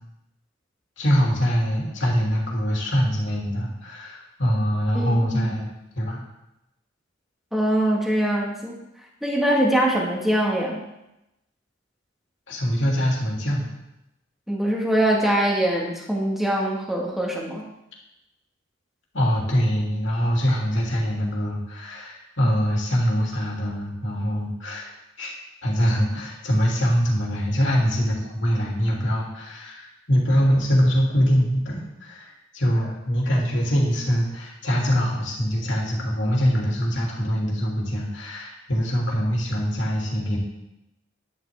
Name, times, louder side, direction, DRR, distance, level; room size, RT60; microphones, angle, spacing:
voice 1, 1.0-5.7 5.9-6.2 12.5-13.7 19.1-25.3 25.6-40.4, equal, 70° left, -3 dB, 3.2 m, -23 dB
voice 2, 4.9-5.4 7.5-8.8 9.2-10.9 14.5-17.6, right 1 dB, ahead, -2 dB, 2.0 m, -23 dB
11.5 x 11.0 x 3.7 m, 0.90 s
head